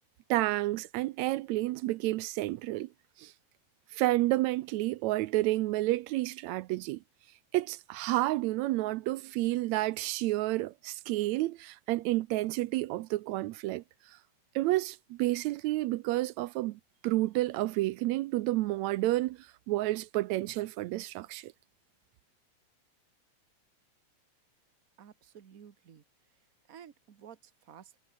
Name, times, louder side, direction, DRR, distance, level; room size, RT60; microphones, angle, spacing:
voice 1, 0.3-2.9 3.2-3.3 3.9-7.0 7.5-13.8 14.6-21.5, right 17 dB, 80° right, 1.8 m, -30 dB
voice 2, 25.0-26.0 26.7-28.0, right 8 dB, 45° right, 1.2 m, -53 dB
omnidirectional pair, 3.3 m